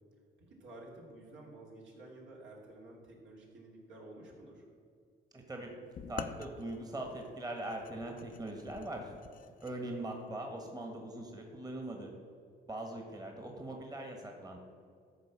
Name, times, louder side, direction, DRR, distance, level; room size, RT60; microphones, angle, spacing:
voice 1, 0.4-4.7 9.7-10.1, right 2 dB, 70° right, -2 dB, 2.8 m, -52 dB
voice 2, 5.3-5.7 6.1-9.1 9.6-12.1 12.7-14.6, right 1 dB, 20° right, 2 dB, 1.5 m, -41 dB
sound 1, 6.0-9.8, left 7 dB, 45° left, 0.6 m, -47 dB
13.0 x 4.5 x 7.4 m, 2.2 s
cardioid pair, 90°, 20 cm